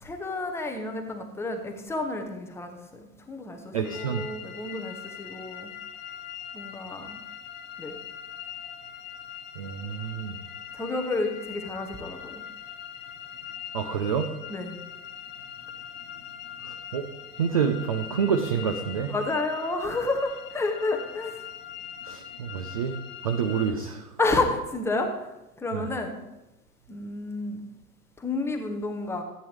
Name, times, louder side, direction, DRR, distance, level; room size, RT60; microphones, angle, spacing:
voice 1, 0.0-2.8 3.3-5.7 6.5-7.2 7.8-7.9 10.7-12.4 14.5-14.8 19.1-21.3 24.2-25.3 25.6-26.2 26.9-27.6 28.2-29.2, left 2 dB, 5° left, 4 dB, 0.9 m, -30 dB
voice 2, 3.7-4.2 9.6-10.4 13.7-14.3 16.9-17.1 17.4-19.1 22.1-22.9 23.2-24.0 25.7-25.8, right 7 dB, 25° right, 6 dB, 0.4 m, -27 dB
sound 1, 3.8-23.7, left 9 dB, 20° left, 1.7 m, -42 dB
13.5 x 9.0 x 3.5 m, 0.96 s
figure-of-eight pair, 105°, 47 cm